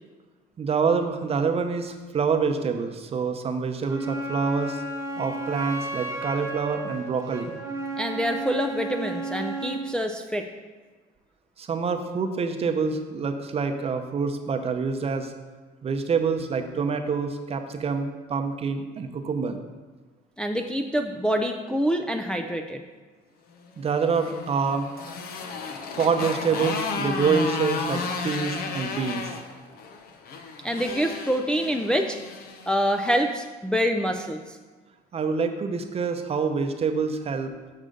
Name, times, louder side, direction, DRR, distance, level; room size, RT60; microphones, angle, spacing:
voice 1, 0.6-4.8 5.2-7.5 11.6-15.3 15.8-19.6 23.8-24.9 26.0-29.3 35.1-37.5, right 5 dB, 35° right, 6 dB, 0.7 m, -26 dB
Wind instrument woodwind instrument, 3.8-9.9, right 2 dB, 15° right, 1.4 m, -33 dB
voice 2, 8.0-10.4 20.4-22.8 30.6-32.2 32.7-34.6, equal, 5° left, 3 dB, 0.4 m, -26 dB
Motorcycle, 23.9-33.3, left 4 dB, 60° left, 0.7 m, -33 dB
6.6 x 6.5 x 3.8 m, 1.3 s
cardioid pair, 110°, 17 cm